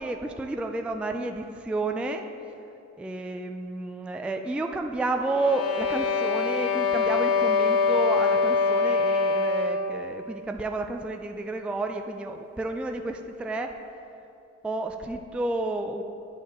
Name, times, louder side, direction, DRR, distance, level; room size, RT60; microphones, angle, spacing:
voice 1, 0.0-2.3 3.0-13.7 14.6-16.0, right 2 dB, 5° right, 5 dB, 0.4 m, -31 dB
sound 1, 5.2-9.9, left 4 dB, 50° left, 1.0 m, -24 dB
11.0 x 5.4 x 3.5 m, 2.7 s
cardioid pair, 90°, 30 cm